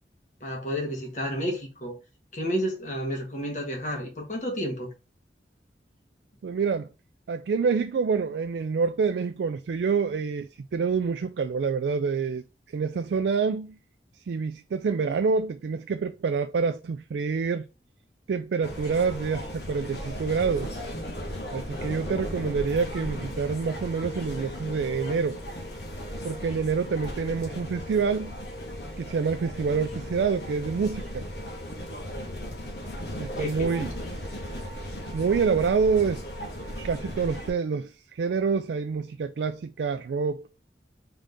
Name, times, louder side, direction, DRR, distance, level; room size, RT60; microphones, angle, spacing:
voice 1, 0.4-2.0 2.3-4.9 33.4-33.9, equal, 45° left, 1.4 m, -31 dB
voice 2, 6.4-6.9 7.3-12.4 12.7-13.8 14.3-17.7 18.3-20.7 21.5-25.4 26.2-28.4 29.0-31.2 33.2-33.9 35.1-36.2 36.8-40.4, right 5 dB, 75° right, 0.3 m, -27 dB
sound 1, 18.6-37.5, equal, 70° left, 1.2 m, -36 dB
3.9 x 3.7 x 3.4 m
head